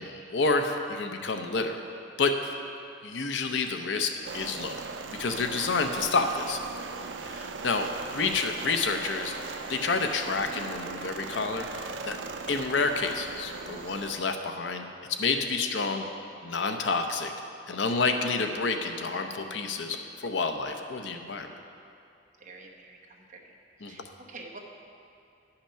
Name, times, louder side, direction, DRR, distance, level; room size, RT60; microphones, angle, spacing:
voice 1, 0.0-1.8 2.2-2.6 3.0-4.8 5.2-6.6 7.2-9.3 9.7-12.2 12.5-16.0 16.4-17.3 17.7-21.5 23.8-24.1, left 4 dB, 85° left, 6 dB, 0.7 m, -29 dB
sound 1, 4.2-14.2, right 4 dB, 85° right, 0.5 m, -39 dB
voice 2, 22.4-23.5 23.8-24.6, right 3 dB, 45° right, -1 dB, 1.0 m, -47 dB
10.0 x 5.8 x 5.7 m, 2.6 s
head